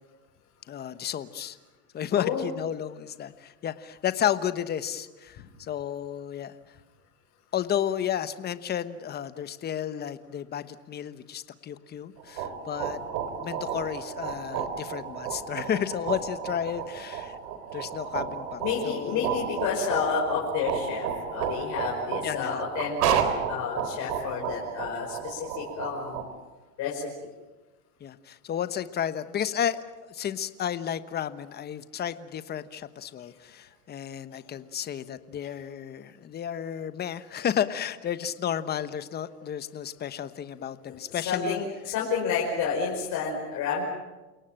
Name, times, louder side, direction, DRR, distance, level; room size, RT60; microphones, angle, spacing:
voice 1, 0.7-1.6 1.9-6.5 7.5-13.0 13.4-17.4 17.7-19.3 22.2-22.6 24.2-24.3 28.0-41.6, left 9 dB, 20° left, 13 dB, 1.1 m, -32 dB
sound 1, 12.2-26.2, right 8 dB, 75° right, 3.9 m, -32 dB
voice 2, 18.6-23.2 23.5-26.3 26.8-27.1 34.3-34.4 40.9-43.8, left 6 dB, 40° left, -3 dB, 5.5 m, -30 dB
28.5 x 18.0 x 9.0 m, 1.2 s
supercardioid pair, 140°, 46 cm